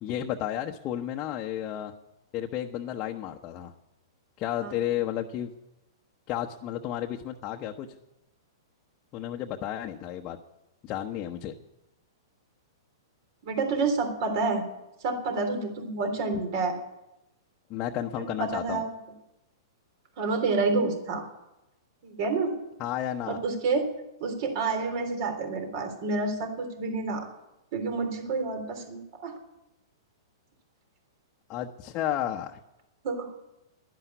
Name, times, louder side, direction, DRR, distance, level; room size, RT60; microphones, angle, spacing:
voice 1, 0.0-1.9 2.3-3.7 4.4-5.5 6.3-8.0 9.1-10.4 10.8-11.5 17.7-18.8 22.8-23.4 31.5-32.6, left 11 dB, 35° left, 2 dB, 1.0 m, -32 dB
voice 2, 13.4-14.6 15.0-16.8 18.2-18.9 20.2-21.3 22.0-22.5 23.3-23.9 24.2-27.3 27.7-29.3 33.0-33.3, right 3 dB, 55° right, 6 dB, 3.4 m, -29 dB
11.0 x 11.0 x 9.3 m, 0.92 s
hypercardioid pair, 120°, 2 cm